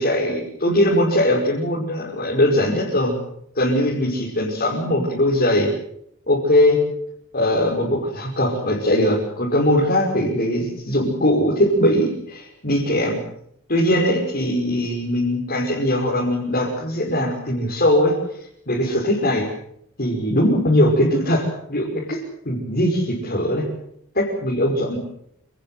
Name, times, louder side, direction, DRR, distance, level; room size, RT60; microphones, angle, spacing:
voice 1, 0.0-3.2 3.5-5.7 6.3-6.8 7.3-13.2 13.7-18.1 18.7-19.5 20.0-23.6 24.1-25.0, left 1 dB, 45° left, -3 dB, 5.7 m, -20 dB
28.0 x 19.5 x 7.8 m, 0.73 s
head